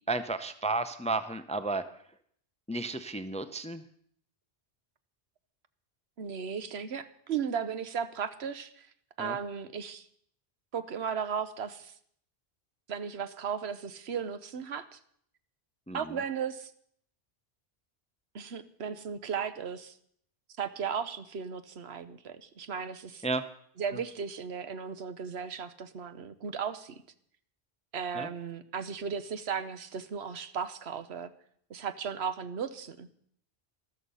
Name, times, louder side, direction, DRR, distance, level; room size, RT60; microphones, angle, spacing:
voice 1, 0.1-1.8 2.7-3.8 9.2-9.4 15.9-16.2 23.2-23.4 28.1-28.3, right 3 dB, 10° left, 11 dB, 0.5 m, -32 dB
voice 2, 6.2-8.9 9.2-10.1 10.7-11.9 12.9-15.0 15.9-16.7 18.3-20.0 20.6-23.2 23.8-26.9 27.9-31.3 31.7-33.1, right 7 dB, 75° right, 12 dB, 1.1 m, -36 dB
13.5 x 13.0 x 5.6 m, 0.65 s
omnidirectional pair, 1.1 m